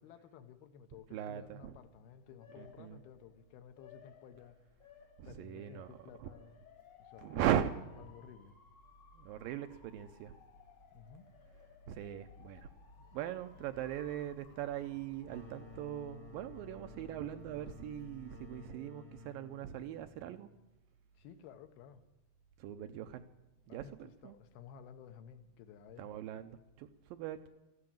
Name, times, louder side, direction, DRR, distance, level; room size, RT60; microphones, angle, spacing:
voice 1, 0.0-4.6 5.2-6.5 7.0-7.5 8.0-8.5 10.9-11.3 21.2-22.0 23.7-26.1, left 8 dB, 80° left, 8 dB, 2.9 m, -54 dB
voice 2, 1.1-1.8 2.5-3.0 5.2-6.3 7.2-7.7 9.1-10.4 11.9-12.7 13.0-20.5 22.6-23.2 23.7-24.4 26.0-27.5, right 10 dB, 80° right, 9 dB, 2.2 m, -39 dB
Motor vehicle (road) / Siren, 1.8-18.7, left 4 dB, 50° left, 1.4 m, -59 dB
sound 1, 15.2-20.7, left 3 dB, 10° left, 0.6 m, -54 dB
14.0 x 11.5 x 8.8 m, 1.0 s
omnidirectional pair, 4.5 m